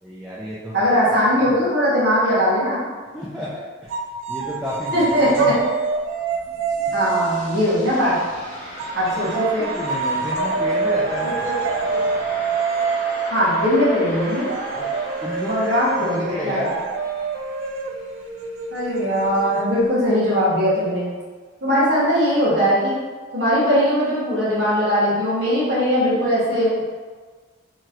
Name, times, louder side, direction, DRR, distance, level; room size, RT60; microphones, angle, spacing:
voice 1, 0.0-0.9 1.4-1.5 3.1-3.9 4.3-5.5 6.9-7.0 9.6-11.4 14.7-14.9 15.2-16.8, equal, 5° right, -9 dB, 0.3 m, -31 dB
voice 2, 0.7-2.8 4.9-5.5 6.9-8.2 8.9-9.7 11.2-11.5 11.9-12.0 13.2-14.5 15.5-16.6 18.7-21.2 21.6-23.0 23.3-26.7, equal, 60° right, -9 dB, 1.1 m, -20 dB
sound 1, 3.9-7.8 8.8-20.1, right 4 dB, 85° right, 0.3 m, -26 dB
sound 2, 6.3-18.9, equal, 40° left, 0.7 m, -37 dB
3.0 x 2.8 x 2.4 m, 1.5 s
head